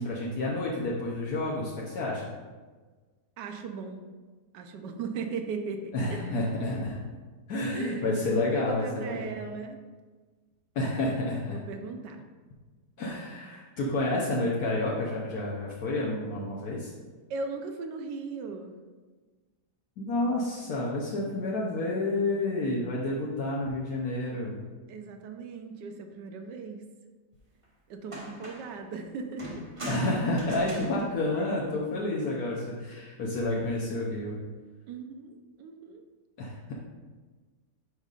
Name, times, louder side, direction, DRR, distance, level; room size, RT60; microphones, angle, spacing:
voice 1, 0.0-2.2 5.9-7.0 7.5-9.3 10.7-11.6 13.0-16.9 20.0-24.6 29.9-34.4 36.4-36.7, left 2 dB, 65° left, -4 dB, 1.3 m, -30 dB
voice 2, 3.4-4.0 4.5-6.3 7.7-9.8 11.5-12.2 17.3-18.7 24.9-26.8 27.9-29.8 31.3-31.4 34.9-36.0, right 4 dB, 85° right, 5 dB, 1.3 m, -38 dB
sound 1, 27.6-27.7 28.1-28.8 29.4-32.1 33.4-33.8, right 1 dB, 25° right, 1.0 m, -42 dB
9.3 x 5.2 x 2.4 m, 1.4 s
omnidirectional pair, 1.8 m